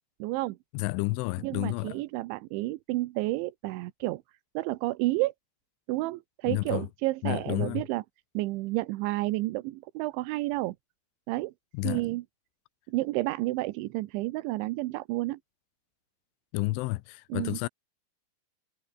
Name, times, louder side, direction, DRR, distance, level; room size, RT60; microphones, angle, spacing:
voice 1, 0.2-0.6 1.4-4.2 4.5-5.3 5.9-8.0 8.3-10.8 11.3-11.5 11.8-12.2 12.9-15.4 17.3-17.6, right 19 dB, 85° right, 3.2 m, -30 dB
voice 2, 0.7-2.0 6.4-6.8 7.2-7.8 11.7-12.0 16.5-17.7, left 22 dB, 90° left, 3.2 m, -30 dB
omnidirectional pair, 5.4 m